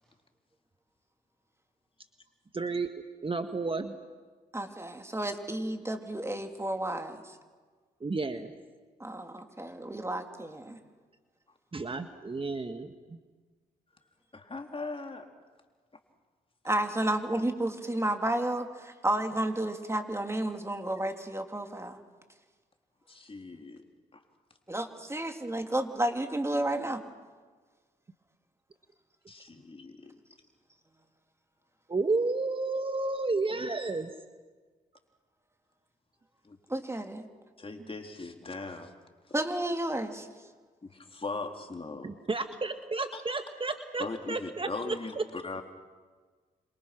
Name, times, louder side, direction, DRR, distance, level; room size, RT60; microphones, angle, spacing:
voice 1, 2.5-3.9 8.0-8.5 11.7-13.2 31.9-34.1 42.0-45.2, right 3 dB, 30° right, 8 dB, 1.7 m, -32 dB
voice 2, 4.5-7.4 9.0-10.8 16.6-22.0 24.7-27.0 36.7-37.3 39.3-40.3, right 1 dB, 15° right, 5 dB, 3.3 m, -32 dB
voice 3, 14.3-15.3 23.1-23.8 24.1-24.2 29.3-30.2 36.4-36.6 37.6-38.9 40.8-42.1 43.1-43.2 44.0-45.6, left 3 dB, 35° left, 4 dB, 3.8 m, -39 dB
28.0 x 27.0 x 6.1 m, 1.4 s
hypercardioid pair, 45°, 17 cm